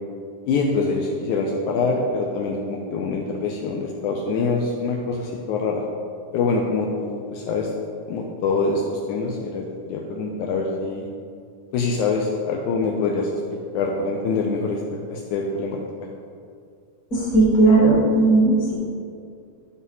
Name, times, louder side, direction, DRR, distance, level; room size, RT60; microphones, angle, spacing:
voice 1, 0.5-5.8 6.3-7.7 8.1-11.1 11.7-13.4 13.7-14.8 15.1-15.8, left 4 dB, 85° left, -1 dB, 1.7 m, -24 dB
voice 2, 17.1-18.7, right 2 dB, 30° left, -6 dB, 1.9 m, -16 dB
11.0 x 4.1 x 5.5 m, 2.3 s
omnidirectional pair, 4.2 m